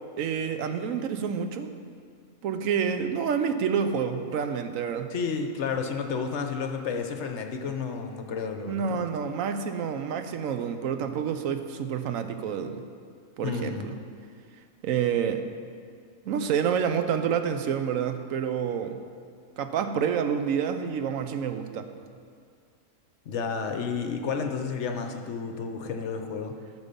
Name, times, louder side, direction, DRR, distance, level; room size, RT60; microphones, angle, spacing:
voice 1, 0.2-1.7 2.4-5.1 8.7-12.8 13.4-14.0 14.8-15.4 16.3-19.0 19.6-21.9, right 7 dB, 75° right, 8 dB, 1.1 m, -28 dB
voice 2, 5.1-9.0 13.4-13.9 23.3-26.6, left 5 dB, 60° left, 5 dB, 1.0 m, -31 dB
12.5 x 6.1 x 5.2 m, 2.2 s
omnidirectional pair, 1.5 m